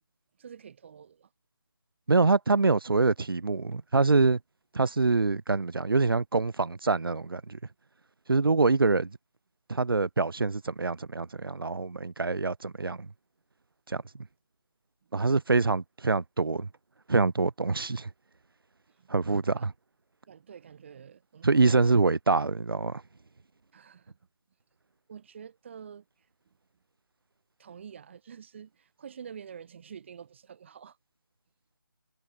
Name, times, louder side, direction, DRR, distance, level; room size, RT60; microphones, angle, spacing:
voice 1, 0.4-1.3 15.1-15.2 18.9-19.1 19.5-19.7 20.3-21.9 23.7-24.2 25.1-26.0 27.6-31.0, right 7 dB, 30° right, 1.5 m, -47 dB
voice 2, 2.1-4.4 4.7-7.6 8.3-9.2 9.7-13.1 13.9-14.0 15.1-16.7 17.1-18.1 19.1-19.7 21.4-23.0, right 3 dB, 80° right, 0.6 m, -25 dB
figure-of-eight pair, 155°, 12 cm